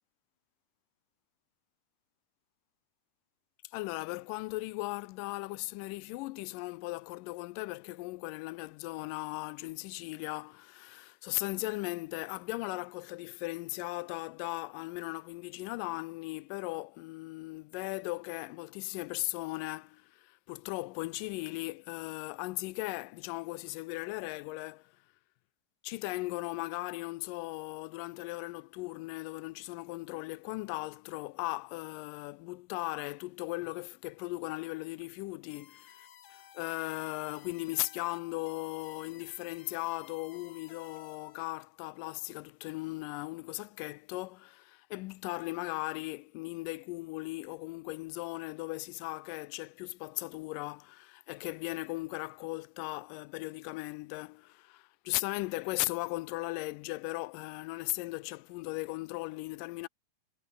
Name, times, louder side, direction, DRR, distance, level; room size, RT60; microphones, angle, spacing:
voice 1, 3.6-24.9 25.8-59.9, left 21 dB, 90° left, 2.2 m, -38 dB
sound 1, 35.5-41.4, left 10 dB, 60° left, 2.6 m, -56 dB
omnidirectional pair, 3.7 m